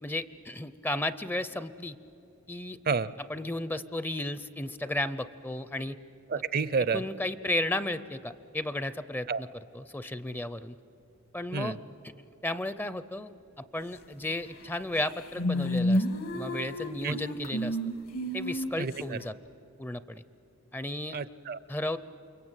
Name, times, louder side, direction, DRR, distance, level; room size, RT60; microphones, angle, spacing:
voice 1, 0.0-2.0 2.5-2.8 3.3-6.0 6.9-9.5 9.7-10.8 11.3-11.8 12.4-13.3 13.6-16.1 16.3-17.8 18.3-19.3 19.8-20.2 20.7-21.2 21.7-22.0, left 1 dB, 10° left, 14 dB, 0.5 m, -34 dB
voice 2, 6.3-7.0 9.3-9.4 11.5-11.8 17.0-17.2 18.8-19.2 21.1-21.6, right 5 dB, 45° right, 17 dB, 0.6 m, -29 dB
sound 1, 14.6-14.7 15.0-19.0, equal, 70° left, 2.1 m, -30 dB
29.0 x 23.0 x 9.0 m, 2.9 s
head